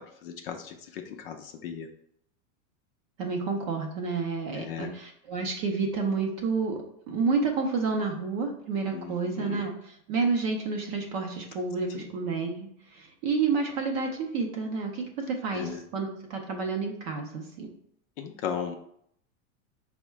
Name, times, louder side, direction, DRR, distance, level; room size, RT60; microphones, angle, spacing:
voice 1, 0.2-1.9 4.6-5.0 8.9-9.7 12.0-12.1 15.5-15.8 18.2-18.8, left 7 dB, 45° left, 4 dB, 0.4 m, -36 dB
voice 2, 3.2-6.8 7.1-9.7 10.1-17.7, right 4 dB, 30° right, 2 dB, 0.4 m, -30 dB
4.5 x 2.1 x 4.4 m, 0.70 s
supercardioid pair, 165°, 42 cm